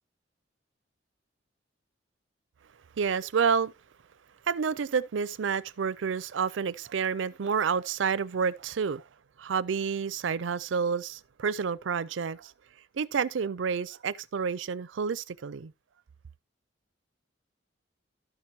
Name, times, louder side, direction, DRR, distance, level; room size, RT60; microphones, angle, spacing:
voice 1, 3.0-3.7 4.5-9.0 9.4-12.5 12.9-15.7, right 6 dB, 80° right, 0.5 m, -29 dB
13.0 x 6.0 x 2.8 m
head